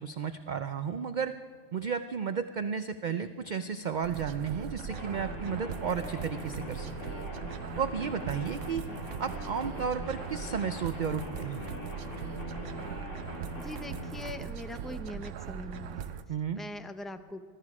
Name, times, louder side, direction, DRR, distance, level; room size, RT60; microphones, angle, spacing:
voice 1, 0.0-1.3 1.7-6.9 7.8-8.8 9.2-11.6 16.3-16.6, right 6 dB, 50° right, 10 dB, 0.6 m, -33 dB
sound 1, 4.0-16.2, right 8 dB, 85° right, 1.0 m, -40 dB
sound 2, 4.9-14.3, left 2 dB, 90° left, 2.8 m, -42 dB
voice 2, 13.6-16.1 16.5-17.4, left 1 dB, ahead, 8 dB, 0.5 m, -42 dB
21.0 x 13.0 x 4.9 m, 2.1 s
omnidirectional pair, 1.2 m